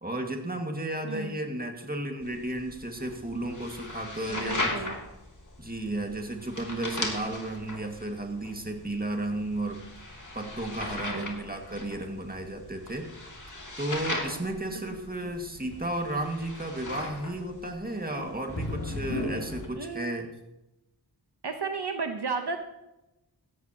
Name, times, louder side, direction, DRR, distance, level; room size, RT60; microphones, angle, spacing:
voice 1, 0.0-4.7 5.6-9.8 10.3-13.1 13.8-20.3, right 1 dB, 20° right, 3 dB, 2.0 m, -33 dB
voice 2, 1.0-1.4 4.3-5.0 11.1-11.3 14.6-14.7 15.2-15.4 19.7-20.3 21.4-22.6, right 4 dB, 65° right, 6 dB, 1.0 m, -34 dB
sound 1, 2.2-19.7, left 2 dB, 45° left, 2.5 m, -37 dB
16.0 x 11.5 x 2.9 m, 0.94 s
wide cardioid pair, 50°, 42 cm